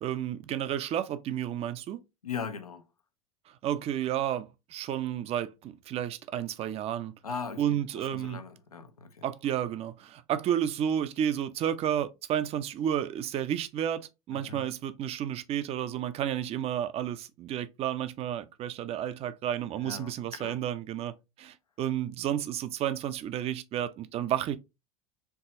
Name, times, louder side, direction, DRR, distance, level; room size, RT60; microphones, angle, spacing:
voice 1, 0.0-2.0 3.6-8.4 9.2-14.0 14.3-24.6, right 10 dB, 35° right, 0.5 m, -31 dB
voice 2, 2.2-2.9 7.2-9.3 14.3-14.7 19.8-20.6, left 5 dB, 85° left, 0.6 m, -39 dB
4.6 x 3.0 x 2.7 m
figure-of-eight pair, 75°, 18 cm